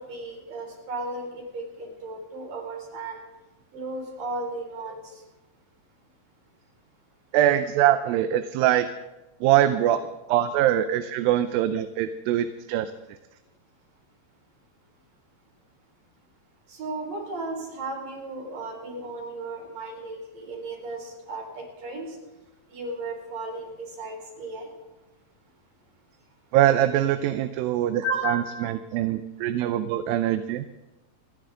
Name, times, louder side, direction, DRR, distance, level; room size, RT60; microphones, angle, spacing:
voice 1, 0.0-3.2 3.7-5.1 16.7-22.2 22.7-24.7 28.0-28.7, right 2 dB, 70° right, -1 dB, 6.1 m, -34 dB
voice 2, 7.3-8.9 9.4-10.0 10.3-12.9 26.5-30.6, right 12 dB, 90° right, 10 dB, 2.4 m, -23 dB
30.0 x 10.5 x 3.8 m, 1.1 s
omnidirectional pair, 4.0 m